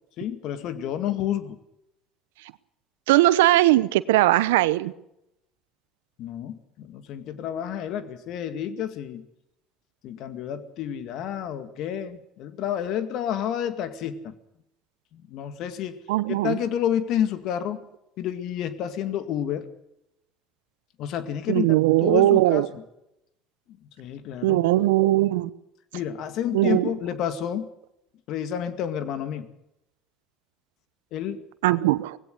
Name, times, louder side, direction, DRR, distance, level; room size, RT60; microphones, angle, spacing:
voice 1, 0.2-1.6 6.2-9.2 10.0-14.3 15.1-16.0 16.3-17.8 18.2-19.7 21.0-21.7 22.0-22.8 24.0-24.6 25.9-27.7 28.3-29.5 31.1-31.4, left 10 dB, 65° left, 10 dB, 2.0 m, -30 dB
voice 2, 3.1-4.9 16.1-16.6 21.5-22.7 24.4-25.5 26.5-26.9 31.6-32.2, right 16 dB, 80° right, 17 dB, 0.8 m, -19 dB
19.5 x 16.5 x 8.0 m, 0.82 s
hypercardioid pair, 70°, 0 cm